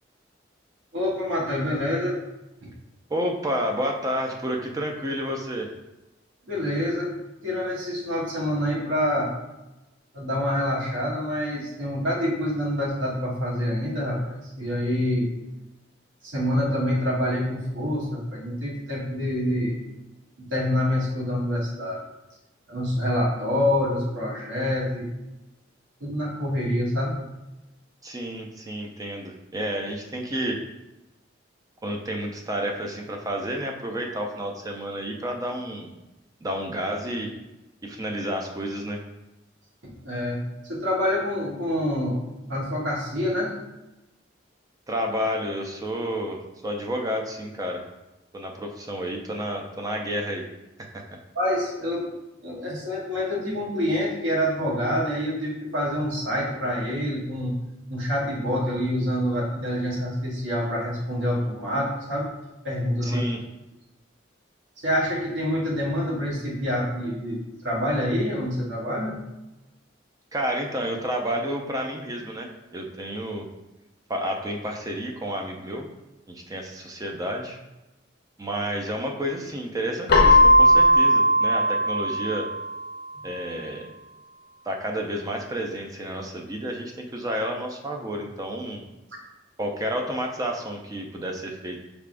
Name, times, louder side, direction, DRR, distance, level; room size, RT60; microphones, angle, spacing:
voice 1, 0.9-2.2 2.6-2.7 6.4-7.2 7.4-9.3 10.1-15.3 16.2-19.8 20.4-22.0 22.7-25.1 26.0-27.2 39.8-43.5 51.3-52.1 52.4-57.5 57.9-62.3 62.6-63.2 64.8-69.2, left 1 dB, 75° right, -3 dB, 1.2 m, -26 dB
voice 2, 3.1-5.7 28.0-30.6 31.8-35.9 36.4-37.3 37.8-39.0 44.9-47.9 48.3-50.4 50.8-51.0 63.0-63.4 70.3-72.5 72.7-73.5 74.1-75.8 76.3-77.6 78.4-82.5 83.2-83.9 84.7-88.8 89.6-91.8, equal, 20° right, 2 dB, 0.4 m, -30 dB
Keyboard (musical), 80.1-82.8, equal, 55° left, 0.7 m, -17 dB
5.6 x 3.4 x 2.5 m, 1.0 s
head